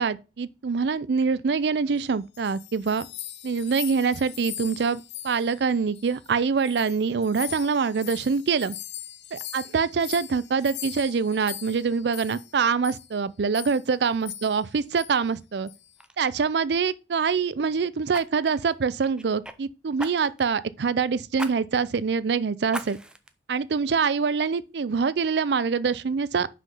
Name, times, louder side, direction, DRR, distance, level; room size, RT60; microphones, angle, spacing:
voice 1, 0.0-3.1 3.4-8.8 9.3-15.7 16.2-23.0 23.5-26.5, right 5 dB, 70° right, 0.4 m, -25 dB
sound 1, 2.1-6.3 6.6-12.5 12.8-13.1 13.5-13.9 14.2-14.7 15.0-15.2 15.7-16.0, left 12 dB, 75° left, 0.8 m, -40 dB
Fire, 15.4-15.6 16.0-16.2 18.1-19.6 20.0-20.5 21.4-21.5 21.9-22.0 22.7-23.3 23.8-23.9, right 1 dB, 5° right, 0.5 m, -38 dB
5.7 x 5.1 x 5.4 m
head